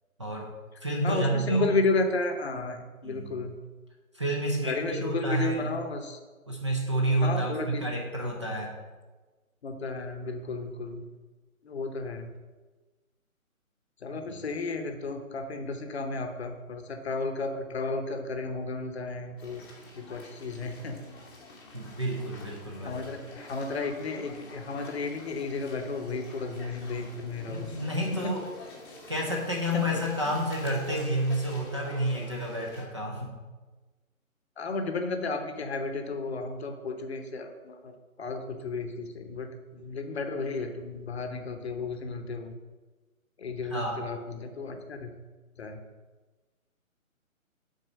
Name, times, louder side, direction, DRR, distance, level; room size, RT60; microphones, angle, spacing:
voice 1, 0.2-0.5 0.8-1.8 3.0-3.4 4.1-5.7 6.5-8.7 14.1-14.4 21.7-23.1 27.5-28.5 29.1-33.4 43.7-44.1, right 1 dB, 20° right, -2 dB, 0.6 m, -30 dB
voice 2, 1.0-3.6 4.6-6.2 7.2-7.8 9.6-11.0 11.6-12.3 14.0-19.6 20.0-21.0 22.8-27.7 28.1-28.3 29.7-29.9 30.3-30.4 34.6-42.5 43.4-45.1 45.6-45.8, left 3 dB, 50° left, 6 dB, 0.8 m, -33 dB
sound 1, 19.4-32.8, left 2 dB, 15° left, 0.9 m, -48 dB
6.3 x 4.2 x 6.3 m, 1.3 s
figure-of-eight pair, 150°, 42 cm